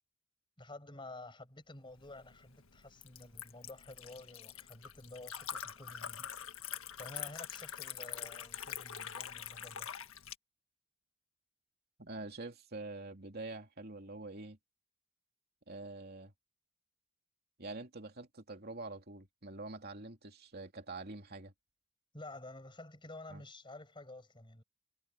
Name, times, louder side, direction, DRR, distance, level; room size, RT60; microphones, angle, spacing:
voice 1, 0.6-6.3 7.0-9.9 22.1-24.6, left 2 dB, 25° left, 5.3 m, -51 dB
Liquid, 2.0-10.3, left 9 dB, 75° left, 1.6 m, -45 dB
voice 2, 12.0-14.6 15.7-16.3 17.6-21.5 23.3-23.4, right 2 dB, 50° right, 3.0 m, -46 dB
head